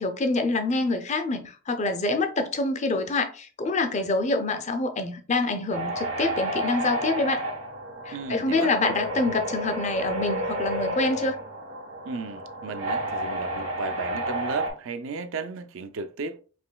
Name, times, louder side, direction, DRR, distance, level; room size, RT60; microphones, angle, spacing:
voice 1, 0.0-7.4 8.1-11.4, left 2 dB, 30° left, 0.4 m, -26 dB
sound 1, 5.7-14.7, right 1 dB, 85° right, 1.3 m, -31 dB
voice 2, 8.1-8.7 12.0-16.4, right 4 dB, 65° right, 0.4 m, -34 dB
5.0 x 3.0 x 2.2 m
head